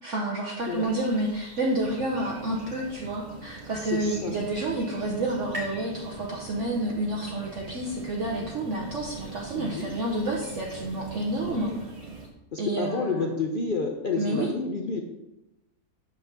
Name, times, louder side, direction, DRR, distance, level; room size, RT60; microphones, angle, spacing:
voice 1, 0.0-11.7 12.6-13.2 14.2-14.5, right 1 dB, 55° right, -2 dB, 1.3 m, -29 dB
sound 1, 0.6-12.3, equal, 20° left, 1.6 m, -50 dB
sound 2, 1.8-12.3, right 4 dB, 85° right, 0.3 m, -44 dB
voice 2, 3.8-4.4 9.5-9.9 11.5-11.8 12.5-15.0, left 4 dB, 55° left, 2 dB, 0.6 m, -30 dB
sound 3, 4.1-7.4, left 2 dB, 30° right, 2.0 m, -44 dB
8.6 x 3.9 x 6.6 m, 0.94 s
omnidirectional pair, 1.7 m